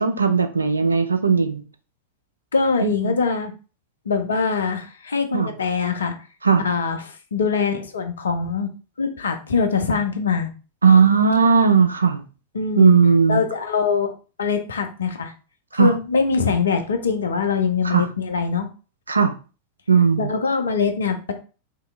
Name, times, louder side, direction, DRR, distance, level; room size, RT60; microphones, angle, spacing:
voice 1, 0.0-1.6 2.8-3.1 5.3-5.5 6.4-6.6 10.8-12.2 12.8-13.4 15.7-15.9 17.8-18.1 19.1-19.3 19.9-20.3, right 5 dB, 75° right, 0.5 m, -17 dB
voice 2, 2.5-3.5 4.1-6.1 6.6-8.7 9.0-10.5 12.5-13.0 13.3-14.1 14.4-15.3 15.8-18.7 20.2-21.3, left 5 dB, 70° left, 0.6 m, -23 dB
3.7 x 2.8 x 3.2 m
figure-of-eight pair, 90°, 0 cm